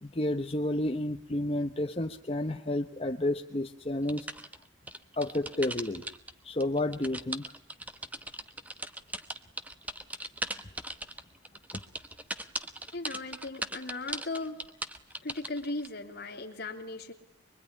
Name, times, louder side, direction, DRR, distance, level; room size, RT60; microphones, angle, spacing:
voice 1, 0.0-4.3 5.2-6.1 6.4-7.4, left 1 dB, 30° left, 4 dB, 1.1 m, -31 dB
sound 1, 4.1-6.3 6.6-15.9, right 1 dB, 10° right, 1.1 m, -38 dB
voice 2, 12.9-14.6 15.2-17.1, left 2 dB, 55° left, 3 dB, 3.1 m, -37 dB
24.0 x 23.5 x 10.0 m, 0.71 s
head